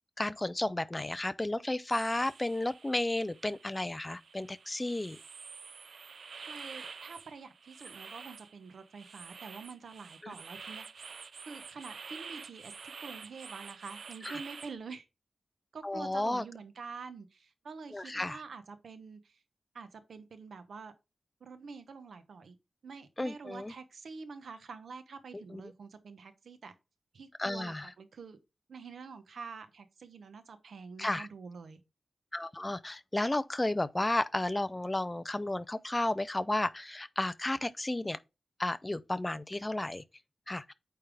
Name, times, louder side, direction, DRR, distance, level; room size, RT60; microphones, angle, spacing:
voice 1, 0.2-5.2 10.2-10.3 14.2-14.4 15.8-16.4 17.9-18.4 23.2-23.7 25.3-25.6 27.4-27.9 31.0-31.3 32.3-38.2 38.6-40.0 40.5-40.7, left 1 dB, 15° left, 0.4 m, -33 dB
sound 1, 1.9-14.7, right 5 dB, 70° right, 0.3 m, -48 dB
voice 2, 6.5-11.1 11.5-15.1 15.7-19.4 19.7-20.9 21.4-22.6 22.8-26.7 27.1-28.4 28.7-31.8, right 5 dB, 85° right, 0.8 m, -47 dB
8.6 x 3.4 x 3.4 m
wide cardioid pair, 140°, 0 cm